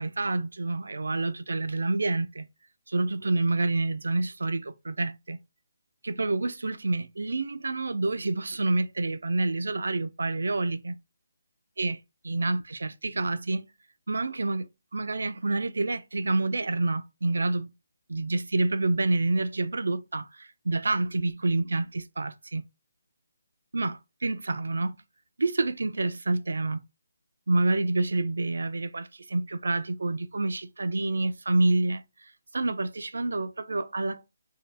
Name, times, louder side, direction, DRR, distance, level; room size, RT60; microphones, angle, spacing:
voice 1, 0.0-2.5 2.9-5.4 6.0-11.0 11.8-13.7 14.1-17.7 18.1-22.6 23.7-25.0 25.4-26.8 27.5-32.0 32.5-34.2, right 2 dB, 80° right, 0.4 m, -28 dB
2.7 x 2.2 x 3.2 m
hypercardioid pair, 170°, 0 cm